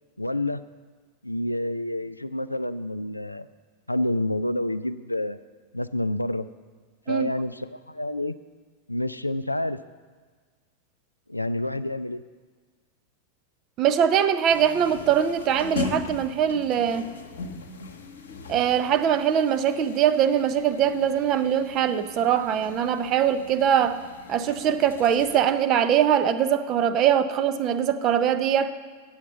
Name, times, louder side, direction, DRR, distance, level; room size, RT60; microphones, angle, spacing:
voice 1, 0.2-0.6 1.2-3.5 3.9-5.4 5.7-6.5 7.1-8.4 8.9-9.8 11.3-12.2, left 1 dB, 85° left, 12 dB, 0.3 m, -28 dB
voice 2, 13.8-17.1 18.5-24.0 24.3-28.7, right 9 dB, 35° right, 11 dB, 0.5 m, -22 dB
sound 1, 14.5-25.4, left 5 dB, 65° left, 1.0 m, -39 dB
7.9 x 7.3 x 7.6 m, 1.5 s
figure-of-eight pair, 90°, 0 cm